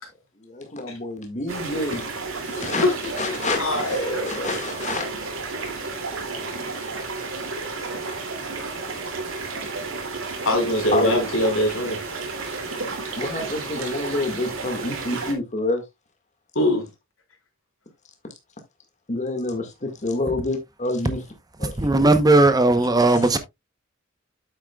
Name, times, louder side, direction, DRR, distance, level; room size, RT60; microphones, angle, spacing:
voice 1, 0.4-2.0 2.5-5.1 10.9-11.5 13.2-15.8 19.1-21.2 21.6-21.8, left 2 dB, 35° left, 1.8 m, -28 dB
sound 1, 1.5-15.3, right 3 dB, 75° right, 2.6 m, -32 dB
voice 2, 2.6-2.9 3.6-4.5 10.5-12.0 16.6-16.9, left 1 dB, 85° left, 3.8 m, -22 dB
voice 3, 21.6-23.4, right 2 dB, 20° right, 0.8 m, -17 dB
8.9 x 8.1 x 2.3 m
head